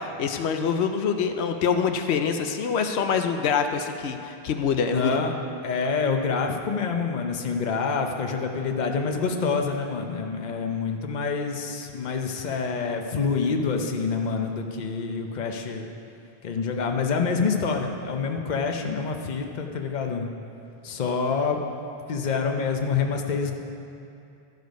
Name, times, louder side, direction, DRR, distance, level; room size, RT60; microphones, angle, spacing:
voice 1, 0.0-5.2, left 6 dB, 85° left, 6 dB, 0.9 m, -25 dB
voice 2, 4.9-5.3 5.6-15.9 16.4-20.3 20.8-21.6 22.1-23.5, left 5 dB, 50° left, 4 dB, 0.8 m, -27 dB
12.0 x 6.6 x 5.2 m, 2.7 s
omnidirectional pair, 1.1 m